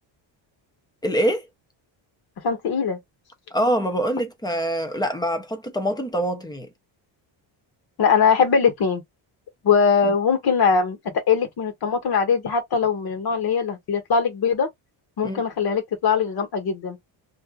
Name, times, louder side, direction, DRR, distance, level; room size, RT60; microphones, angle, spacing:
voice 1, 1.0-1.5 3.5-6.7 10.0-10.1 15.2-15.4, equal, 10° left, 0.5 m, -24 dB
voice 2, 2.4-3.0 8.0-9.0 9.6-11.0 11.3-14.7 15.2-17.0, left 6 dB, 50° left, 1.3 m, -21 dB
2.6 x 2.5 x 3.7 m
cardioid pair, 170°, 49 cm